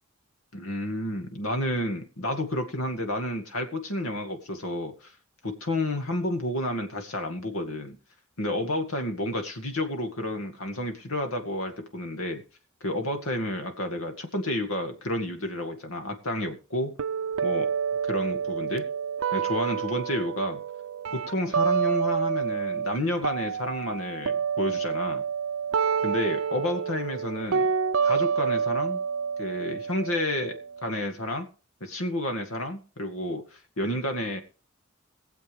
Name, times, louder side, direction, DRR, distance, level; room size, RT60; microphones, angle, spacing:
voice 1, 0.5-5.1 5.4-8.0 8.4-12.4 12.8-17.0 17.4-17.7 18.0-18.9 19.3-20.6 21.1-25.2 26.0-27.7 28.0-29.0 29.4-31.5 31.8-34.4, left 1 dB, 80° left, 6 dB, 2.1 m, -30 dB
sound 1, 17.0-23.0 23.2-31.0, right 6 dB, 75° right, 0.6 m, -28 dB
22.0 x 7.5 x 3.4 m, 0.36 s
head